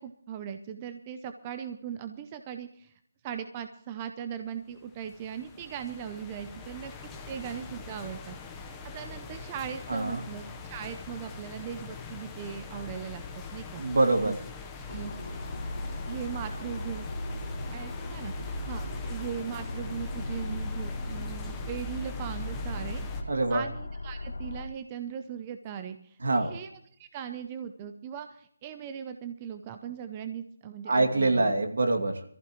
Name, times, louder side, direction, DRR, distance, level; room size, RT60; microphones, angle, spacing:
voice 1, 0.0-2.9 3.2-6.9 7.3-8.4 8.7-13.2 13.5-13.8 14.2-14.3 14.9-15.1 16.1-17.1 17.7-26.7 27.0-31.5, right 8 dB, 15° right, 8 dB, 0.6 m, -39 dB
sound 1, 4.8-23.2, left 3 dB, 5° left, 1.0 m, -41 dB
voice 2, 9.9-10.3 13.8-14.4 18.9-19.0 23.3-23.6 26.2-26.5 30.9-32.2, right 2 dB, 65° right, 5 dB, 2.6 m, -25 dB
sound 2, 14.9-24.7, left 1 dB, 60° left, 2.1 m, -38 dB
22.5 x 14.5 x 3.1 m, 0.63 s
hypercardioid pair, 175°, 0 cm